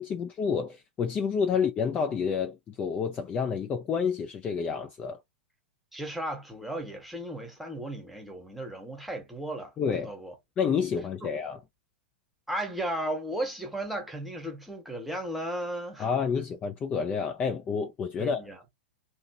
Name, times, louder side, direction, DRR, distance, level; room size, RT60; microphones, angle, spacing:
voice 1, 0.0-5.2 9.8-10.1 10.6-11.6 16.0-18.7, left 6 dB, 20° left, 0.4 m, -29 dB
voice 2, 5.9-10.3 12.5-16.1 18.2-18.6, right 1 dB, ahead, 1.1 m, -35 dB
2.8 x 2.6 x 2.7 m
figure-of-eight pair, 100°, 6 cm